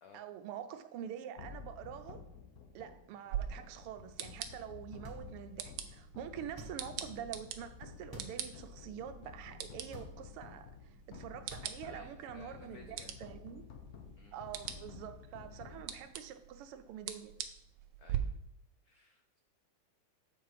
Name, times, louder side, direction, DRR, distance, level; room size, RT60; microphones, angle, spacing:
voice 1, 0.1-2.2 2.7-13.6 14.3-17.4, right 9 dB, 85° right, 9 dB, 1.6 m, -46 dB
sound 1, 1.4-16.7, left 6 dB, 60° left, 1.1 m, -52 dB
sound 2, 3.3-18.2, right 10 dB, 70° right, 1.1 m, -45 dB
sound 3, 5.0-5.6 6.4-7.0 8.0-8.5 8.8-8.9 9.8-10.5 11.4-12.0, right 1 dB, 15° right, 0.9 m, -51 dB
voice 2, 11.8-13.2 14.2-14.4 18.0-18.3 18.8-19.4, left 4 dB, 80° left, 4 dB, 0.8 m, -58 dB
7.6 x 4.9 x 4.7 m, 0.80 s
omnidirectional pair, 2.4 m